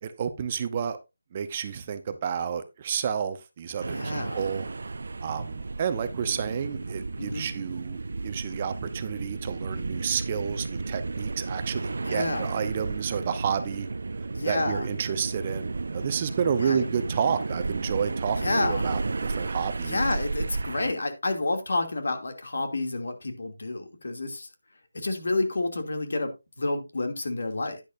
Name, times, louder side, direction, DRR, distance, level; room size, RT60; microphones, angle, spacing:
voice 1, 0.0-1.0 1.3-4.7 5.2-13.9 14.4-20.0, right 7 dB, 30° right, 10 dB, 0.8 m, -30 dB
sound 1, 3.8-20.9, right 3 dB, 65° right, 0.6 m, -33 dB
voice 2, 3.9-4.4 7.2-7.5 12.0-12.5 14.3-14.9 16.6-16.9 18.4-18.9 19.8-24.5 24.9-27.8, left 2 dB, 65° left, 6 dB, 2.7 m, -29 dB
10.5 x 10.0 x 2.6 m, 0.24 s
figure-of-eight pair, 165°, 0 cm